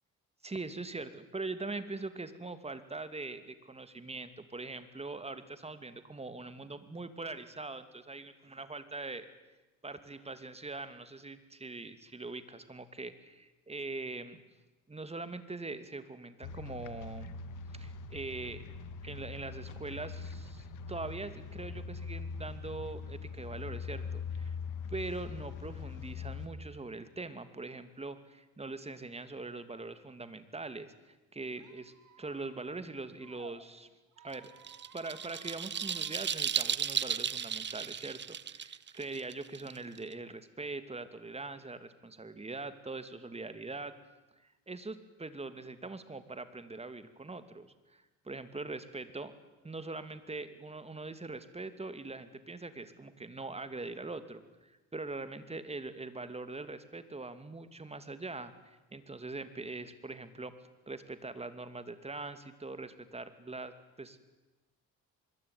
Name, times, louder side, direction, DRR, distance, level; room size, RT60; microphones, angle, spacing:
voice 1, 0.4-9.3 9.8-14.4 14.9-17.4 17.7-18.6 19.0-24.6 24.9-33.9 34.2-34.5 34.9-43.9 44.7-49.3 49.6-60.5 60.9-63.7 64.0-64.2, right 3 dB, 20° right, 11 dB, 2.6 m, -42 dB
sound 1, 16.4-26.5, left 5 dB, 85° left, 2.1 m, -42 dB
Squeak, 31.6-33.5 34.1-36.2, right 9 dB, 80° right, 3.2 m, -58 dB
sound 2, 34.3-40.1, right 8 dB, 35° right, 0.8 m, -35 dB
24.5 x 22.5 x 9.7 m, 1.1 s
cardioid pair, 90°, 30 cm